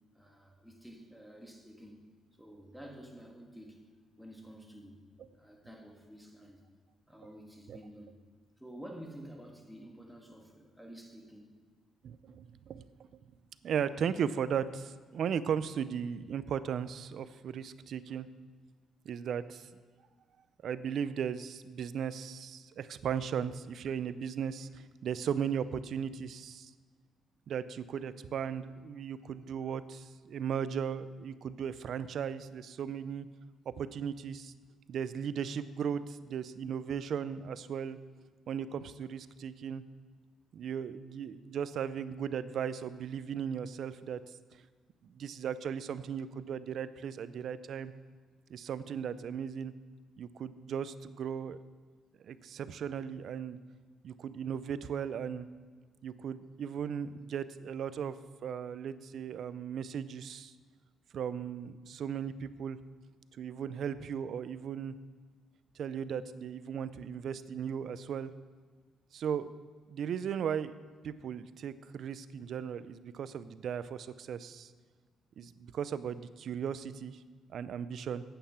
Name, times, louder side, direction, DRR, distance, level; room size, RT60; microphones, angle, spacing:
voice 1, 0.1-2.1 2.4-3.9 4.2-5.0 5.3-6.6 7.1-8.2 8.6-11.6, equal, ahead, 1 dB, 1.7 m, -50 dB
voice 2, 12.0-12.8 13.6-18.3 19.1-19.7 20.6-26.7 27.5-33.3 33.7-34.5 34.9-38.0 38.5-39.8 40.5-44.2 45.0-47.9 48.5-49.7 50.2-51.6 52.2-53.6 54.0-55.5 56.0-58.1 58.4-60.5 61.1-62.8 63.4-64.9 65.8-68.3 69.1-69.5 69.9-70.7 71.0-74.7 75.4-77.2 77.5-78.2, right 8 dB, 65° right, 14 dB, 0.5 m, -36 dB
9.0 x 8.7 x 5.7 m, 1.5 s
cardioid pair, 90°, 0 cm